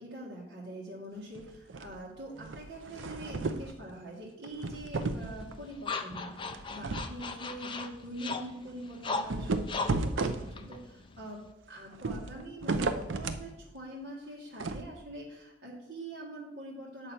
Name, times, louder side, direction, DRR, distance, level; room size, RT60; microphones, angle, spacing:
voice 1, 0.0-11.4 11.7-17.1, right 1 dB, 60° right, -5 dB, 1.8 m, -44 dB
sound 1, 1.3-2.0 2.4-3.7 4.4-5.6 6.5-7.2 7.5-7.6 8.0-8.1 9.1-10.9 11.9-13.5 14.6-14.8, right 3 dB, 85° right, 0.6 m, -34 dB
sound 2, 5.0-11.5, left 4 dB, 25° left, 0.5 m, -39 dB
8.3 x 6.6 x 4.4 m, 0.89 s
head